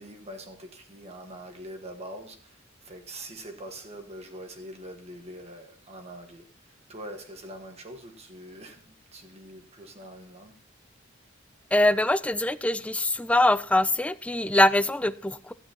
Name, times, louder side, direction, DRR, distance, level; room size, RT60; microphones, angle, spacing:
voice 1, 0.0-10.6, right 1 dB, 30° right, 1.3 m, -44 dB
voice 2, 11.7-15.5, left 1 dB, 5° left, 0.3 m, -23 dB
13.0 x 8.9 x 2.8 m
head